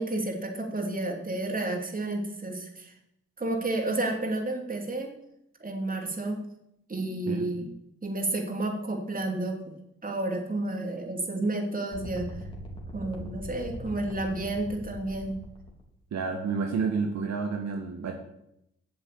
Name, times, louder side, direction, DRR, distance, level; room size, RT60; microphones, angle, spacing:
voice 1, 0.0-2.9 3.4-5.1 5.6-6.4 6.9-7.7 8.0-9.6 10.0-12.3 12.9-15.3, right 2 dB, 30° right, 2 dB, 2.9 m, -31 dB
sound 1, 11.9-15.8, left 1 dB, 20° left, 3.6 m, -41 dB
voice 2, 16.1-18.1, right 5 dB, 65° right, 3 dB, 1.6 m, -30 dB
8.6 x 7.2 x 8.6 m, 0.80 s
supercardioid pair, 60°, 29 cm